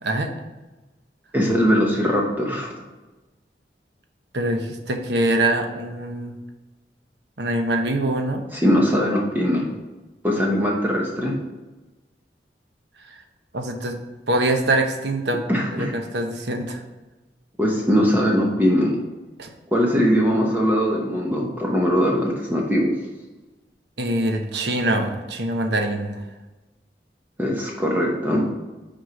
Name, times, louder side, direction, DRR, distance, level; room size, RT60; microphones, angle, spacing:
voice 1, 0.0-0.3 4.3-6.4 7.4-8.4 13.1-13.2 13.5-14.0 14.3-15.4 15.7-16.8 19.4-19.5 24.0-26.2, right 1 dB, 80° right, 4 dB, 0.9 m, -24 dB
voice 2, 1.3-2.7 8.5-9.7 10.2-11.3 15.5-15.9 17.6-18.9 19.7-22.9 27.4-28.5, equal, 10° right, -2 dB, 0.9 m, -21 dB
6.3 x 4.4 x 5.2 m, 1.1 s
head